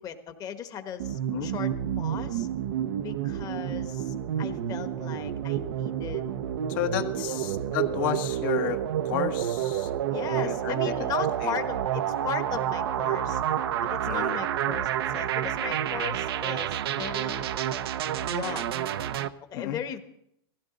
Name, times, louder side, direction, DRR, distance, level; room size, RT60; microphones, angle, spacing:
voice 1, 0.0-2.5 3.0-6.3 7.2-7.5 10.1-13.4 13.8-17.4 18.2-18.7 19.5-20.0, left 8 dB, 30° left, 8 dB, 1.3 m, -37 dB
sound 1, 1.0-19.3, right 10 dB, 75° right, 0.7 m, -29 dB
voice 2, 6.7-9.9 10.3-11.0 11.4-11.6 14.1-14.4 19.5-19.8, left 11 dB, 55° left, 6 dB, 1.4 m, -32 dB
17.5 x 15.5 x 3.9 m, 0.75 s
hypercardioid pair, 135°, 13 cm